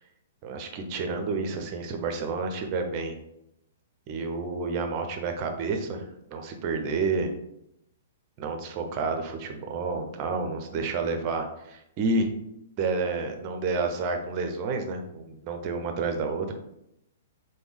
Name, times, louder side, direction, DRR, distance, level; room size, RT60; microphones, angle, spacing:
voice 1, 0.4-3.2 4.1-6.0 6.3-7.3 8.4-12.3 12.8-16.5, right 3 dB, 40° right, 5 dB, 0.6 m, -30 dB
3.4 x 2.2 x 3.2 m, 0.80 s
hypercardioid pair, 120°, 0 cm